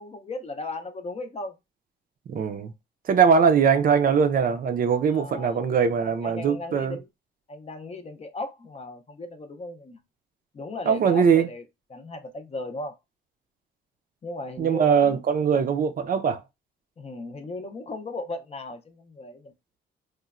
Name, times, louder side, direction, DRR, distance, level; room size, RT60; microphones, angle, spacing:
voice 1, 0.0-1.6 5.0-7.1 7.5-10.0 10.5-11.6 11.9-12.9 14.2-15.2 17.0-19.5, left 2 dB, 30° left, 0.5 m, -36 dB
voice 2, 2.3-2.7 3.1-7.0 10.9-11.5 14.6-16.4, right 6 dB, 45° right, 0.4 m, -21 dB
3.0 x 2.1 x 2.4 m
cardioid pair, 90°, 20 cm